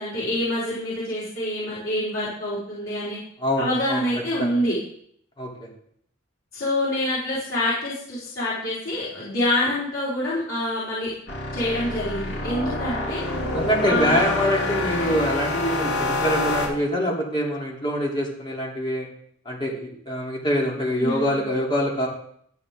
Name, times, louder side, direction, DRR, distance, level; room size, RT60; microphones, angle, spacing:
voice 1, 0.0-3.2 3.6-4.7 6.5-11.1 11.5-13.2 13.9-14.2 21.0-21.4, left 1 dB, 85° left, -11 dB, 4.5 m, -26 dB
voice 2, 3.4-4.0 4.4-4.5 5.4-5.7 13.5-19.1 19.4-22.1, equal, 25° left, -3 dB, 3.1 m, -25 dB
sound 1, 11.3-16.7, left 2 dB, 55° left, 2.6 m, -27 dB
13.5 x 7.9 x 3.7 m, 0.67 s
head